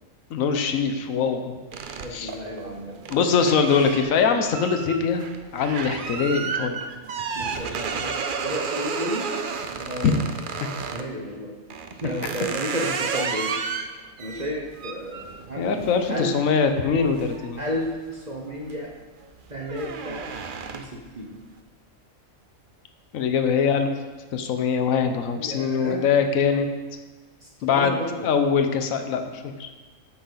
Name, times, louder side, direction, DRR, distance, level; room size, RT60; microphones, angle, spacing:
voice 1, 0.3-1.6 2.1-2.3 3.1-5.2 5.5-6.8 10.0-10.1 15.6-17.6 23.1-23.9 24.3-26.7 27.6-29.7, left 6 dB, 75° left, 6 dB, 1.3 m, -22 dB
sound 1, 1.7-11.1 11.7-18.1 18.5-18.9 19.2-21.1, right 5 dB, 50° right, 0.7 m, -32 dB
voice 2, 2.0-3.6 7.3-9.3 9.7-10.2 10.9-11.5 11.9-13.6 14.2-16.3 17.6-18.9 19.5-20.3 20.7-21.4 23.6-23.7 25.1-26.0 27.4-28.3, equal, 35° right, -1 dB, 1.2 m, -33 dB
10.5 x 8.4 x 4.0 m, 1.3 s
omnidirectional pair, 1.4 m